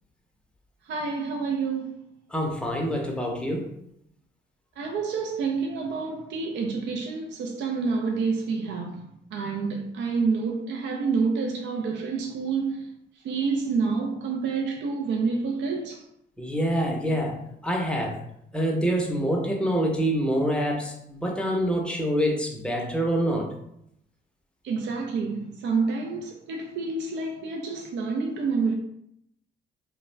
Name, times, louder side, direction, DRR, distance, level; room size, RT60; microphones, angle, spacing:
voice 1, 0.8-2.0 4.8-12.9 13.2-16.1 24.6-28.7, right 4 dB, 65° right, 0.4 m, -28 dB
voice 2, 2.3-3.7 16.4-18.2 18.5-23.5, equal, 5° left, 0.6 m, -26 dB
2.3 x 2.1 x 3.1 m
cardioid pair, 90°, 20 cm